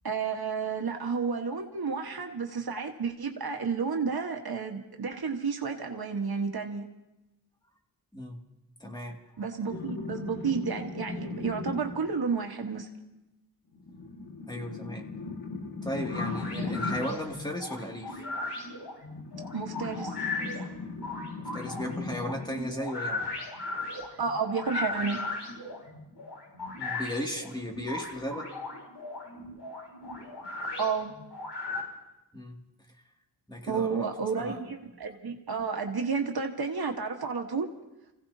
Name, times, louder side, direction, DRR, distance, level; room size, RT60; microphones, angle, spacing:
voice 1, 0.0-6.8 9.4-12.9 19.5-20.2 24.2-25.2 30.8-31.1 33.7-37.7, right 5 dB, 70° right, 3 dB, 1.4 m, -31 dB
voice 2, 8.8-9.2 14.5-15.1 15.8-18.3 20.7-20.9 21.4-23.3 26.8-28.5 32.3-32.6 33.5-34.1 34.4-34.6, equal, 10° left, 0 dB, 2.3 m, -36 dB
sound 1, 9.7-12.2 13.7-17.3 19.1-22.6 24.3-24.4, left 3 dB, 60° left, 1.8 m, -38 dB
sound 2, 16.0-31.8, left 3 dB, 85° left, 4.9 m, -37 dB
30.0 x 16.5 x 2.8 m, 0.96 s
cardioid pair, 55°, 39 cm